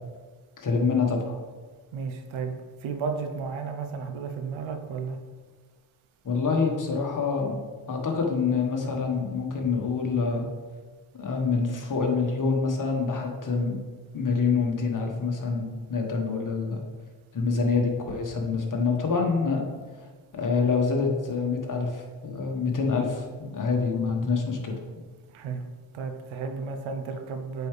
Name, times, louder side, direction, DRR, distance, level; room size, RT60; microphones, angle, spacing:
voice 1, 0.6-1.3 6.2-7.6 7.9-10.4 11.1-13.8 14.1-16.8 17.3-19.6 20.3-24.7, left 4 dB, 40° left, 1 dB, 1.5 m, -26 dB
voice 2, 1.9-2.5 2.8-5.2 22.8-22.9 25.3-25.6 25.9-27.7, right 5 dB, 90° right, 5 dB, 0.9 m, -33 dB
8.3 x 4.7 x 3.3 m, 1.4 s
cardioid pair, 90°, 46 cm